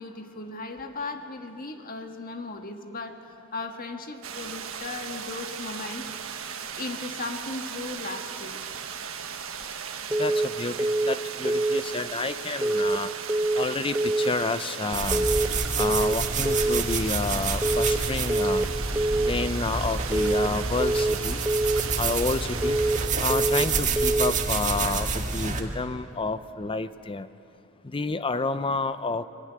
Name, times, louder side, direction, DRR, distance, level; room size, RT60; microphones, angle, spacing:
voice 1, 0.0-6.1 6.8-8.6, left 3 dB, 45° left, 5 dB, 1.7 m, -37 dB
sound 1, 4.2-23.1, right 7 dB, 85° right, 1.4 m, -37 dB
sound 2, 10.1-10.5 10.8-11.2 11.4-11.8 12.6-13.0 13.3-13.7 13.9-14.3 15.1-15.5 15.8-16.2 16.4-16.8 17.6-18.0 18.3-18.7 18.9-19.3 20.1-20.5 20.8-21.2 21.5-21.8 22.6-23.0 23.3-23.7 24.0-24.4, right 2 dB, 10° right, 0.7 m, -25 dB
voice 2, 10.2-13.1 13.5-15.3 15.8-18.7 19.2-21.4 22.0-22.8 23.2-27.3 27.8-29.2, left 3 dB, 25° left, 12 dB, 0.6 m, -30 dB
sound 3, 14.9-25.6, right 4 dB, 40° right, 1.7 m, -28 dB
22.0 x 18.5 x 9.8 m, 2.6 s
head